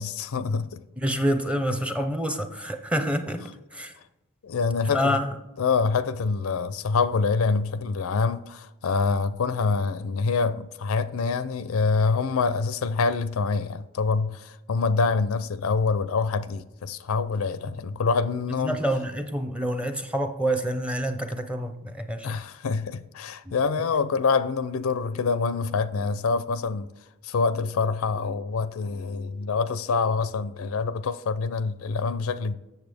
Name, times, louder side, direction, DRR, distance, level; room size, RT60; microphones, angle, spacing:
voice 1, 0.0-0.8 4.4-5.2 5.6-18.8 22.2-26.9 27.2-32.5, left 4 dB, 75° left, 0.4 m, -26 dB
voice 2, 1.0-3.4 3.7-4.0 4.9-5.4 18.6-22.4 23.4-23.6, equal, 5° right, 0.7 m, -27 dB
8.0 x 7.0 x 3.5 m
head